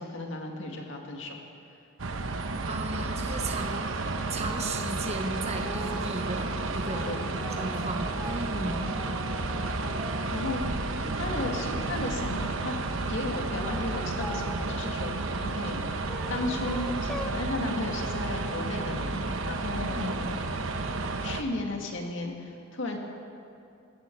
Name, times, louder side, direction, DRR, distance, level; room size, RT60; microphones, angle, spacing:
voice 1, 0.0-1.4 7.0-7.3 8.6-9.0 10.3-10.6 11.1-12.7 13.1-19.2 19.5-20.6 21.2-23.0, left 2 dB, 65° left, 1 dB, 2.1 m, -35 dB
sound 1, 2.0-21.4, right 3 dB, 75° right, 1.0 m, -32 dB
voice 2, 2.6-7.1 7.6-8.9 19.9-20.3, right 2 dB, 35° right, 3 dB, 1.0 m, -36 dB
sound 2, 5.6-6.1 6.6-10.6 11.0-12.6 13.3-14.9 15.7-17.4, equal, 5° left, 0.6 m, -43 dB
19.5 x 15.5 x 4.7 m, 2.5 s
head